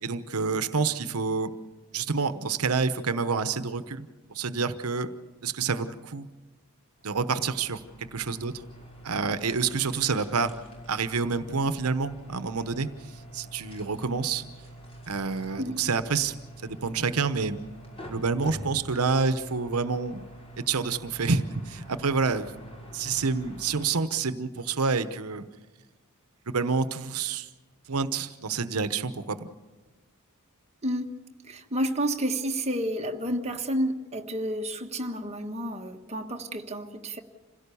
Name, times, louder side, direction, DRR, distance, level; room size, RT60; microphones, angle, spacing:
voice 1, 0.0-1.5 1.9-5.1 5.4-6.3 7.0-8.6 9.0-10.6 10.9-14.4 15.1-16.3 16.6-17.6 18.1-20.2 20.7-22.5 22.9-25.4 26.5-27.5 27.9-29.5, right 4 dB, 80° right, 1.0 m, -28 dB
sound 1, 7.0-23.9, right 1 dB, 25° left, 5.9 m, -46 dB
voice 2, 30.8-31.2 31.4-37.2, right 1 dB, 30° right, 1.4 m, -30 dB
27.0 x 17.0 x 7.0 m
head